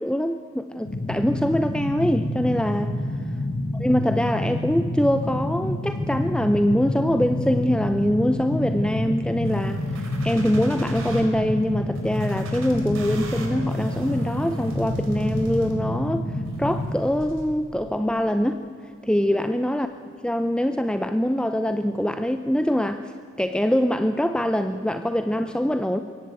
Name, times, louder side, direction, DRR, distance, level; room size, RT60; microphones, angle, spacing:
voice 1, 0.0-3.0 3.8-18.6 19.0-19.9 20.2-26.0, equal, 5° left, 9 dB, 0.6 m, -24 dB
sound 1, 0.8-16.9, left 1 dB, 55° left, 1.4 m, -28 dB
sound 2, 9.5-11.2 12.0-16.0 16.5-17.4, right 1 dB, 85° right, 4.4 m, -38 dB
22.5 x 17.0 x 9.1 m, 2.4 s
head